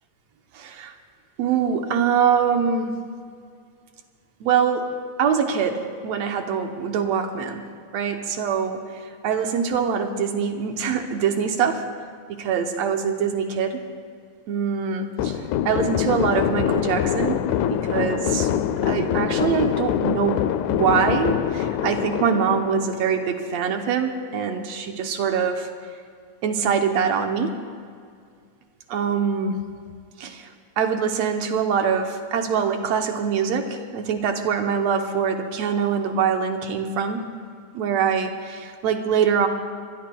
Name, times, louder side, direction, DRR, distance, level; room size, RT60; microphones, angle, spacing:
voice 1, 0.5-0.9 1.4-2.9 4.4-4.9 5.2-7.6 7.9-11.8 12.3-13.8 14.5-15.4 15.7-17.4 17.7-18.5 18.8-25.7 26.4-27.6 28.9-29.6 30.2-30.5 30.8-37.2 37.7-39.5, right 7 dB, 70° right, 5 dB, 1.8 m, -24 dB
sound 1, 15.2-23.5, left 10 dB, 85° left, 2.0 m, -24 dB
23.5 x 21.0 x 2.3 m, 2.2 s
omnidirectional pair, 3.5 m